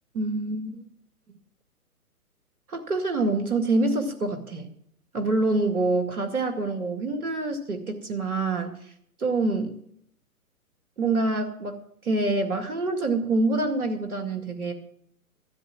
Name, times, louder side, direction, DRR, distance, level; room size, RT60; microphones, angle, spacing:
voice 1, 0.1-0.8 2.7-4.7 5.1-8.8 9.2-9.7 11.0-11.8 12.0-14.7, right 2 dB, 70° right, 6 dB, 2.2 m, -26 dB
13.0 x 8.0 x 7.3 m, 0.69 s
figure-of-eight pair, 125°, 45 cm